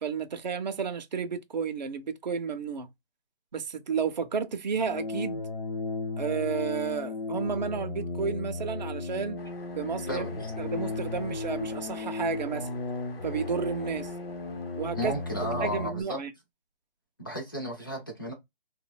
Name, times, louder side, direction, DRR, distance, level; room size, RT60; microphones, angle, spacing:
voice 1, 0.0-2.9 3.5-5.4 6.2-9.4 9.8-10.3 10.6-12.7 13.2-14.1 14.8-15.1 15.6-16.3, right 6 dB, 50° right, 0.4 m, -32 dB
sound 1, 4.7-16.0, left 3 dB, 60° left, 0.8 m, -35 dB
sound 2, 9.4-15.5, left 4 dB, 85° left, 0.9 m, -49 dB
voice 2, 10.1-10.5 15.0-16.2 17.2-18.3, equal, 25° left, 0.5 m, -34 dB
3.2 x 2.1 x 2.2 m
hypercardioid pair, 170°, 29 cm